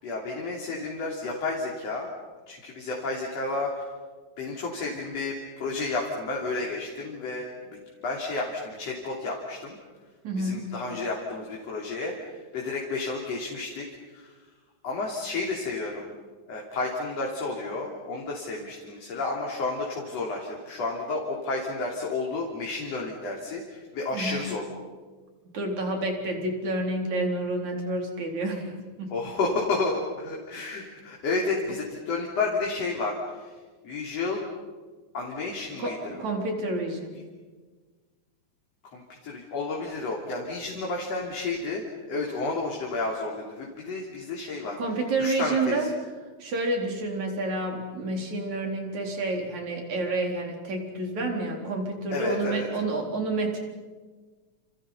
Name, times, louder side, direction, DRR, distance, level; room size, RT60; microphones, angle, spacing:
voice 1, 0.0-2.1 2.5-3.9 4.4-9.8 10.4-13.9 14.1-14.3 14.8-16.1 16.5-24.7 29.1-33.5 33.8-34.4 35.1-36.2 38.9-44.8 45.2-45.9 52.1-52.7, left 3 dB, 55° left, -2 dB, 4.4 m, -31 dB
voice 2, 10.2-10.7 24.1-24.5 25.5-29.1 35.8-37.1 44.8-45.9 46.4-53.6, right 2 dB, 70° right, 2 dB, 5.3 m, -29 dB
30.0 x 29.5 x 5.7 m, 1.4 s
omnidirectional pair, 3.4 m